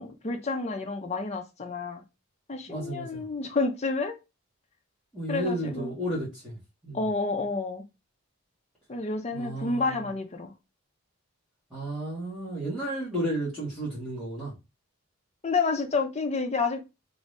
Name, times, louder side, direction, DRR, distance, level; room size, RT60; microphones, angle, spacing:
voice 1, 0.0-2.0 2.5-4.2 5.3-5.9 6.9-7.8 8.9-10.5 15.4-16.8, left 3 dB, 30° left, 0.5 m, -29 dB
voice 2, 2.7-3.2 5.1-6.6 6.8-7.0 9.3-10.0 11.7-14.5, right 1 dB, ahead, 1.2 m, -32 dB
2.7 x 2.6 x 3.2 m
head